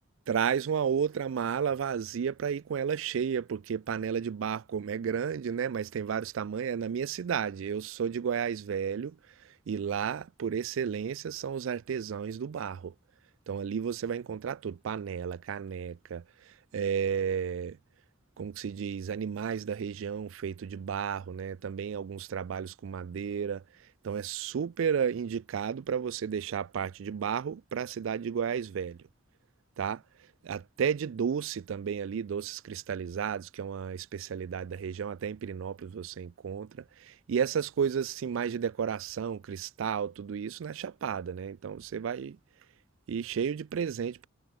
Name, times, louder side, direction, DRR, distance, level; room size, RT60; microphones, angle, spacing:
voice 1, 0.3-12.9 13.5-17.8 18.4-29.0 29.8-42.4 43.1-44.3, right 7 dB, 75° right, 0.4 m, -33 dB
head